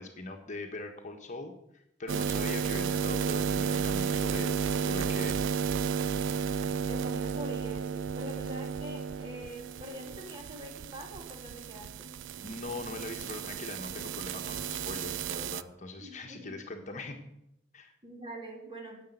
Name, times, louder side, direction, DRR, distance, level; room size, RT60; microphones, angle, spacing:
voice 1, 0.0-5.5 12.4-17.2 17.7-18.0, left 2 dB, 40° left, 3 dB, 1.4 m, -41 dB
sound 1, 2.1-15.6, right 7 dB, 70° right, 0.4 m, -33 dB
voice 2, 6.9-12.1 16.0-16.6 18.0-19.0, right 1 dB, 25° right, 0 dB, 3.1 m, -44 dB
10.5 x 8.2 x 8.0 m, 0.81 s
head